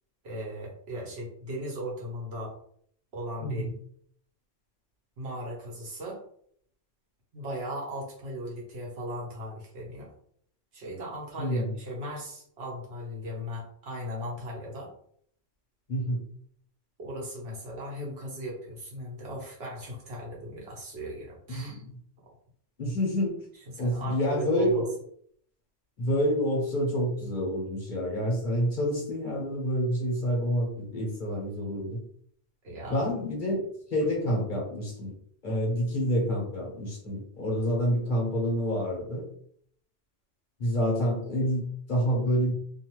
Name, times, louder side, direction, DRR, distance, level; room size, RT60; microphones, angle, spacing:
voice 1, 0.2-2.5 3.1-3.7 5.2-6.2 7.3-10.1 10.7-14.9 17.0-21.8 23.7-24.7 32.6-33.1 34.0-34.1, equal, 70° right, -3 dB, 1.2 m, -37 dB
voice 2, 11.4-11.7 15.9-16.2 21.5-21.9 22.8-23.4 23.8-24.9 26.0-32.0 32.9-35.1 35.4-39.3 40.6-42.5, equal, 50° left, -3 dB, 1.1 m, -28 dB
2.6 x 2.4 x 3.0 m, 0.64 s
omnidirectional pair, 1.1 m